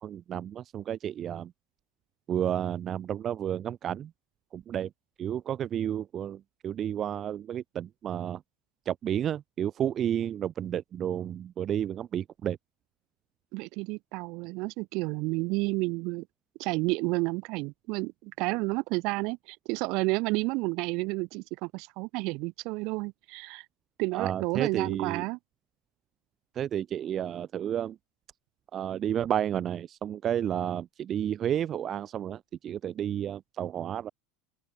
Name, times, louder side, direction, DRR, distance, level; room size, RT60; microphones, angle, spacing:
voice 1, 0.0-1.5 2.3-4.1 4.5-4.9 5.2-8.4 8.9-12.6 24.1-25.2 26.5-28.0 28.7-34.1, right 10 dB, 30° right, 0.3 m, -31 dB
voice 2, 13.5-16.3 16.6-23.6 24.0-25.4, right 26 dB, 55° right, 0.7 m, -31 dB
open air
supercardioid pair, 145°, 0 cm